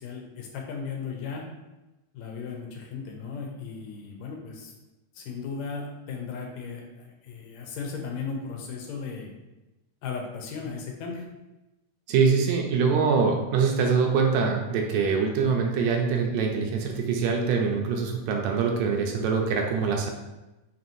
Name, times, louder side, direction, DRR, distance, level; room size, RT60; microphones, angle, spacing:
voice 1, 0.0-1.5 2.1-4.7 5.2-9.3 10.0-11.3, left 5 dB, 80° left, 0 dB, 1.9 m, -36 dB
voice 2, 12.1-20.1, right 5 dB, 80° right, 1 dB, 1.8 m, -24 dB
5.5 x 2.8 x 2.6 m, 1.0 s
omnidirectional pair, 3.3 m